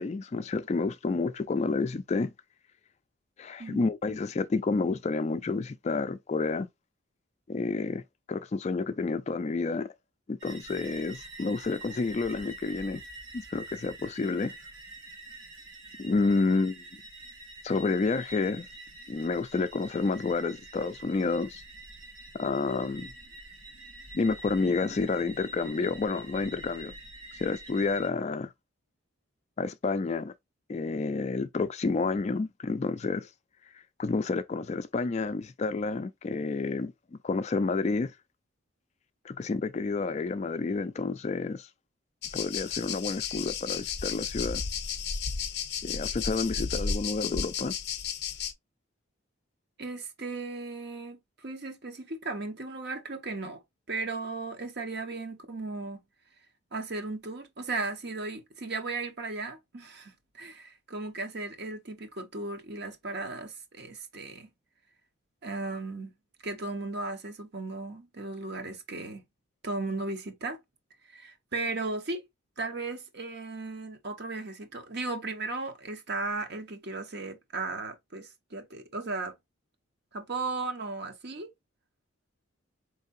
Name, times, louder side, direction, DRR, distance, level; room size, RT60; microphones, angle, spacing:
voice 1, 0.0-2.3 3.4-6.7 7.5-8.0 8.3-9.9 10.3-13.0 13.3-14.5 16.0-16.8 17.6-18.7 19.1-21.6 22.3-23.1 24.1-26.9 27.3-28.5 29.6-30.3 30.7-33.3 34.0-36.9 37.2-38.1 39.2-41.7 42.3-44.6 45.8-47.7, left 3 dB, 35° left, 0.3 m, -29 dB
sound 1, 10.4-28.1, right 2 dB, 85° right, 1.7 m, -47 dB
sound 2, 42.2-48.5, left 6 dB, 50° left, 0.7 m, -33 dB
voice 2, 49.8-53.6 53.9-56.0 56.7-64.5 65.4-66.1 66.4-69.2 69.6-70.6 71.0-72.2 72.6-79.3 80.1-81.5, right 3 dB, 50° right, 1.0 m, -36 dB
4.6 x 3.2 x 2.6 m
head